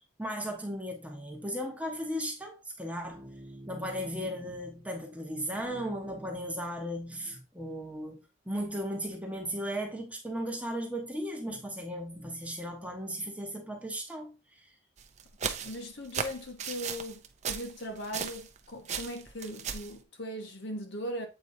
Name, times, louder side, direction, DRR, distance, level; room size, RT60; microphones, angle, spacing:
voice 1, 0.2-8.2 8.5-14.7, equal, 5° right, 1.0 m, -36 dB
sound 1, 15.0-18.6 18.9-19.9, right 7 dB, 35° right, 0.5 m, -36 dB
voice 2, 15.4-21.3, equal, 60° left, 1.1 m, -39 dB
7.8 x 4.4 x 2.7 m
head